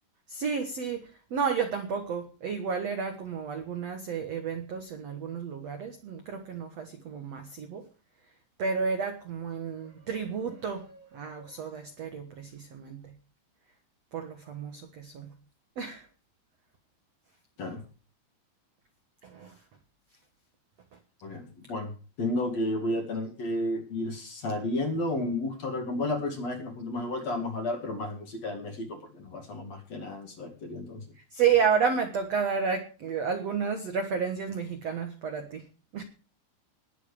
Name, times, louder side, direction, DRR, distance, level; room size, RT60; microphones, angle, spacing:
voice 1, 0.3-7.9 8.6-13.0 14.1-15.3 15.8-16.1 19.2-19.5 31.3-35.6 35.9-36.0, right 6 dB, 65° right, 6 dB, 1.6 m, -31 dB
voice 2, 21.2-21.9 22.2-31.0, left 1 dB, 45° left, 4 dB, 3.0 m, -32 dB
20.5 x 7.6 x 5.0 m, 0.37 s
omnidirectional pair, 5.1 m